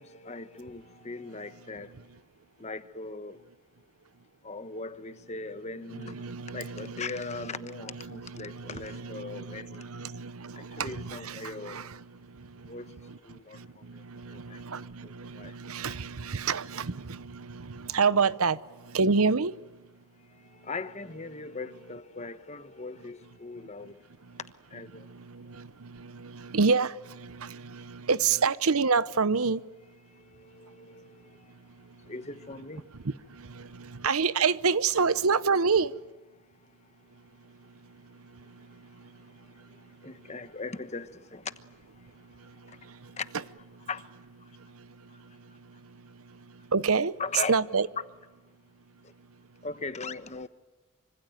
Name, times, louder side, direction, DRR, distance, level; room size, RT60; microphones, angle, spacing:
voice 1, 0.0-1.9 2.6-3.4 4.4-9.9 10.6-11.9 12.7-12.9 13.2-14.0 14.3-14.6 15.0-15.6 20.4-24.0 24.7-25.1 30.1-31.4 32.1-32.9 40.0-41.5 42.7-42.8 43.2-43.3 43.9-44.1 47.2-47.5 49.0-49.1 49.6-50.5, left 3 dB, 30° left, 12 dB, 1.1 m, -39 dB
voice 2, 5.9-7.6 7.9-12.0 12.4-12.5 12.7-13.2 13.5-18.6 18.9-19.5 25.1-29.6 33.4-35.9 46.7-47.1 47.5-47.9, right 5 dB, 75° right, 17 dB, 0.8 m, -28 dB
25.5 x 25.0 x 9.2 m, 1.2 s
head